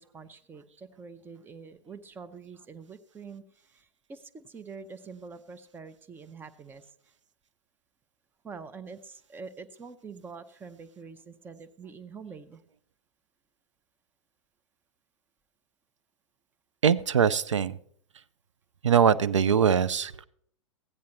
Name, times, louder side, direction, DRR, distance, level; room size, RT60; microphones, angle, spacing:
voice 1, 0.0-3.4 3.7-6.8 8.4-12.6, right 5 dB, 10° right, 12 dB, 0.6 m, -45 dB
voice 2, 16.8-17.8 18.8-20.2, right 7 dB, 70° right, 15 dB, 0.5 m, -22 dB
15.5 x 9.3 x 3.0 m, 0.62 s
figure-of-eight pair, 100°, 16 cm